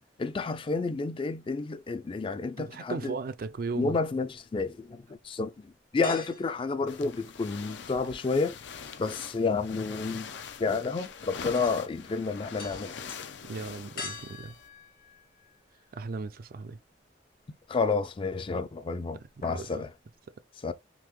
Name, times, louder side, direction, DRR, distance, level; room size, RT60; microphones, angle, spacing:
voice 1, 0.2-3.1 3.8-8.6 9.0-10.3 10.6-12.9 17.7-19.9 20.6-20.7, left 4 dB, 30° left, 0.3 m, -30 dB
voice 2, 2.6-4.0 13.5-14.5 15.9-16.8 19.4-19.8, right 4 dB, 55° right, 0.4 m, -36 dB
sound 1, 3.5-4.4 4.8-4.9 6.0-7.7 8.0-15.9 16.3-16.4 17.9-18.5 18.8-19.0 19.2-19.8 20.1-20.2, left 4 dB, 55° left, 1.0 m, -46 dB
sound 2, 6.9-14.7, left 6 dB, 90° left, 0.5 m, -43 dB
3.7 x 2.9 x 3.0 m
head